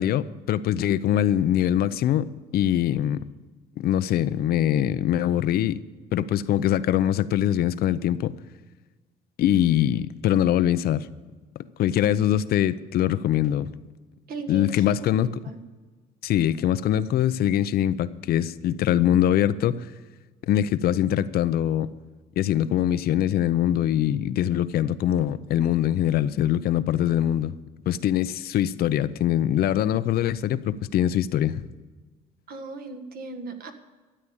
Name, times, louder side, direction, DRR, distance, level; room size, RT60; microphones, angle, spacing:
voice 1, 0.0-2.3 2.5-3.2 3.8-5.8 6.1-8.3 9.4-11.1 11.8-13.7 14.5-15.3 16.2-19.9 20.5-21.9 22.4-27.5 27.9-31.6, left 11 dB, 65° left, 14 dB, 0.6 m, -23 dB
voice 2, 14.3-15.6 32.5-33.7, right 3 dB, 65° right, 6 dB, 1.7 m, -37 dB
13.0 x 8.7 x 8.6 m, 1.3 s
cardioid pair, 110°, 17 cm